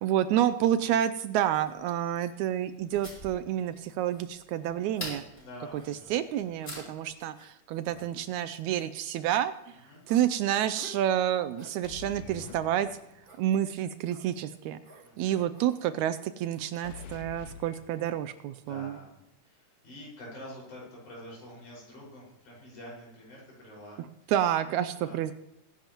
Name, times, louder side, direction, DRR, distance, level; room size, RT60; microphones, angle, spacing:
voice 1, 0.0-5.2 5.7-9.8 10.1-12.9 13.4-14.8 15.2-19.0 24.3-25.3, right 11 dB, 80° right, 12 dB, 1.7 m, -29 dB
sound 1, 1.5-1.7 2.1-2.3 2.9-3.5 4.1-4.2 4.9-5.1 5.7-5.9 6.6-6.7 7.3-7.5 7.9-8.1 8.6-8.9 9.3-9.5 10.1-10.2 10.8-11.1 11.6-11.8 12.4-12.6 13.2-13.4 14.1-14.3 14.8-15.1 15.5-15.7, right 1 dB, 35° right, 0.8 m, -52 dB
sound 2, 1.6-7.2, equal, 20° left, 5.9 m, -46 dB
voice 2, 5.4-6.1 6.8-7.0 9.9-10.0 15.0-15.4 18.6-24.0 25.0-25.2, left 1 dB, 65° left, -5 dB, 6.8 m, -47 dB
sound 3, 7.9-8.5 11.8-13.4 16.8-18.5, left 7 dB, 90° left, 2.5 m, -47 dB
22.5 x 10.5 x 3.0 m, 0.85 s
omnidirectional pair, 3.8 m